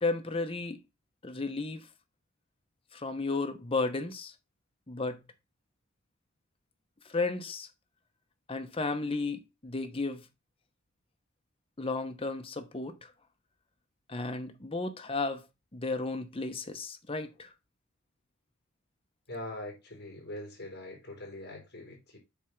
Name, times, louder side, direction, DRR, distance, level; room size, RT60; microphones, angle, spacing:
voice 1, 0.0-0.8 1.2-1.9 2.9-4.3 4.9-5.2 7.1-7.7 8.5-10.2 11.8-13.1 14.1-15.4 15.7-17.5, left 3 dB, 25° left, 0.9 m, -33 dB
voice 2, 19.3-22.2, left 1 dB, 50° left, 3.9 m, -42 dB
8.1 x 3.5 x 5.9 m
head